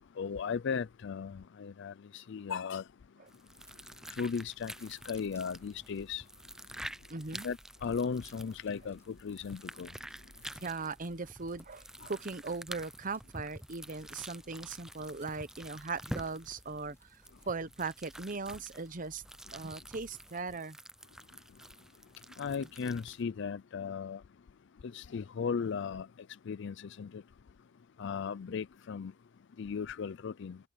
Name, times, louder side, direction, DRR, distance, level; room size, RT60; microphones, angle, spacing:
voice 1, 0.2-2.8 4.1-6.2 7.4-9.9 22.4-24.2 24.8-26.1 26.5-27.2 28.0-29.1 29.6-30.6, left 6 dB, 65° left, 0.4 m, -36 dB
sound 1, 3.3-23.2, right 1 dB, 5° right, 0.5 m, -48 dB
Fire, 3.5-20.3, equal, 15° left, 3.2 m, -62 dB
voice 2, 7.1-7.5 10.6-19.2 19.5-20.8, right 4 dB, 45° right, 1.0 m, -39 dB
head